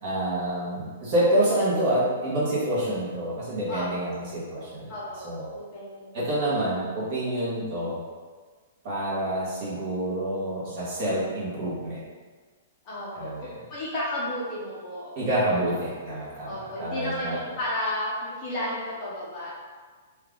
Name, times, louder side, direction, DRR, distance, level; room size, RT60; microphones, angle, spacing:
voice 1, 0.0-4.9 5.2-5.5 6.1-8.0 8.8-12.0 13.1-13.5 15.2-17.4, right 1 dB, 35° right, -8 dB, 1.4 m, -27 dB
voice 2, 3.7-4.1 4.9-6.2 12.8-13.3 13.7-15.2 15.5-15.7 16.4-19.5, left 1 dB, 20° left, -8 dB, 0.9 m, -33 dB
3.6 x 3.4 x 3.7 m, 1.5 s
hypercardioid pair, 175°, 0 cm